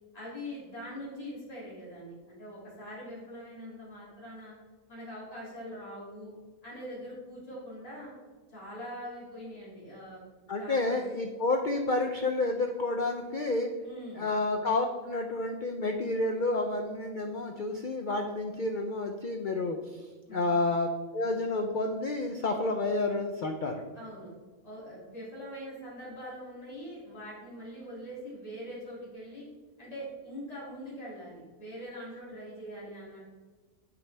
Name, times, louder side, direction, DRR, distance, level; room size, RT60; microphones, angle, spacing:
voice 1, 0.1-4.5 4.9-6.3 6.6-8.1 8.5-10.2 10.6-11.0 13.8-14.3 20.3-20.5 23.9-24.3 24.6-29.5 29.8-33.2, equal, 25° left, -7 dB, 2.6 m, -43 dB
voice 2, 10.5-13.7 14.2-20.9 21.1-23.8, left 2 dB, 80° left, 4 dB, 0.4 m, -30 dB
8.7 x 6.2 x 3.3 m, 1.4 s
omnidirectional pair, 1.6 m